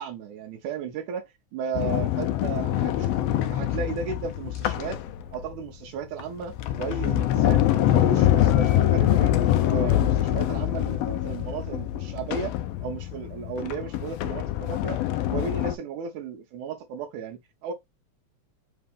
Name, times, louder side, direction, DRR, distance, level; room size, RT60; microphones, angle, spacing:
voice 1, 0.0-3.2 3.5-5.0 5.3-7.7 7.9-9.4 9.7-12.6 12.8-15.0 15.3-17.7, right 6 dB, 80° right, 2.2 m, -35 dB
Sliding door, 1.7-5.5 6.2-15.8, left 12 dB, 85° left, 1.4 m, -24 dB
5.2 x 2.9 x 3.5 m
omnidirectional pair, 3.5 m